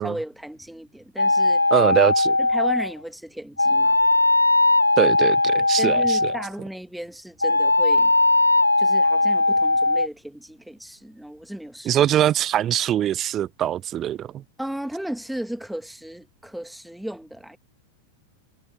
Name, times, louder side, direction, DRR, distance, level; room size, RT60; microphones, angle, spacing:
voice 1, 0.0-1.6 2.4-4.0 5.5-8.1 8.8-12.0 14.6-17.6, right 1 dB, ahead, 1.7 m, -35 dB
sound 1, 1.2-2.9 3.6-6.5 7.4-10.1, left 2 dB, 85° left, 0.4 m, -19 dB
voice 2, 1.7-2.4 5.0-6.3 11.9-14.3, right 11 dB, 30° right, 0.4 m, -22 dB
figure-of-eight pair, 90°, 0 cm